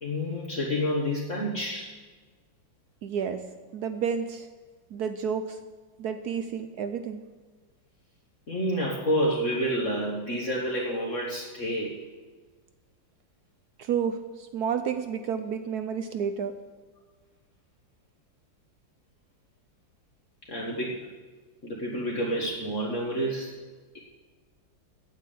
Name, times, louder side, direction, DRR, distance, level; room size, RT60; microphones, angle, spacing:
voice 1, 0.0-1.9 8.5-12.0 20.5-21.0 21.6-23.6, equal, 40° left, -4 dB, 1.7 m, -29 dB
voice 2, 3.0-3.4 3.7-4.5 4.9-5.6 6.0-7.2 13.8-16.5, right 7 dB, 70° right, 9 dB, 1.0 m, -30 dB
9.0 x 8.1 x 8.4 m, 1.4 s
omnidirectional pair, 2.1 m